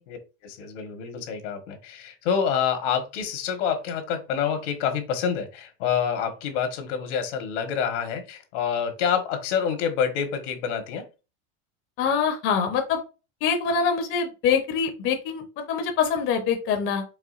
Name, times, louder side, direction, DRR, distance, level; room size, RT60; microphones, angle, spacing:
voice 1, 0.4-11.0, left 7 dB, 75° left, 7 dB, 1.3 m, -27 dB
voice 2, 12.0-13.0 13.4-17.0, left 6 dB, 35° left, 5 dB, 0.7 m, -24 dB
4.8 x 3.5 x 2.4 m, 0.30 s
supercardioid pair, 155°, 36 cm